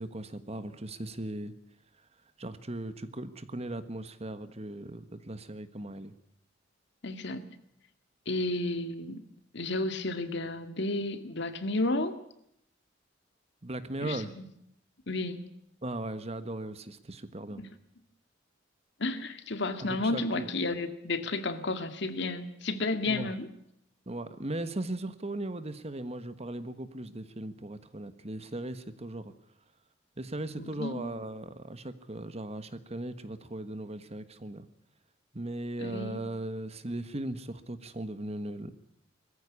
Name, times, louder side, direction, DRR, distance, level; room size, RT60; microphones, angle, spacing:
voice 1, 0.0-1.5 2.4-6.1 13.6-14.3 15.8-17.6 19.8-20.5 23.0-23.3 24.1-29.3 30.2-34.6 35.3-38.7, right 1 dB, 35° right, 12 dB, 1.4 m, -38 dB
voice 2, 7.0-7.5 8.3-9.2 9.5-12.1 14.0-14.5 15.1-15.5 17.6-17.7 19.0-23.5 30.6-31.0 35.8-36.2, left 2 dB, 65° left, 9 dB, 1.9 m, -32 dB
21.5 x 15.0 x 10.0 m, 0.75 s
head